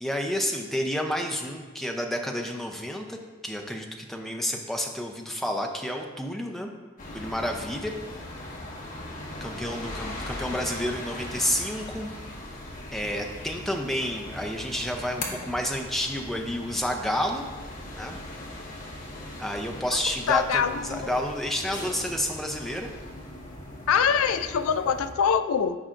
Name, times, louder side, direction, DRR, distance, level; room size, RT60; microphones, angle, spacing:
voice 1, 0.0-3.2 3.4-6.7 7.1-7.9 9.4-12.1 12.9-17.5 18.0-18.2 19.4-22.9, equal, ahead, 2 dB, 0.5 m, -30 dB
sound 1, 7.0-25.1, left 1 dB, 40° left, 1.1 m, -39 dB
voice 2, 20.3-21.2 23.9-25.8, left 7 dB, 85° left, 11 dB, 0.4 m, -24 dB
13.0 x 5.0 x 2.5 m, 1.4 s
head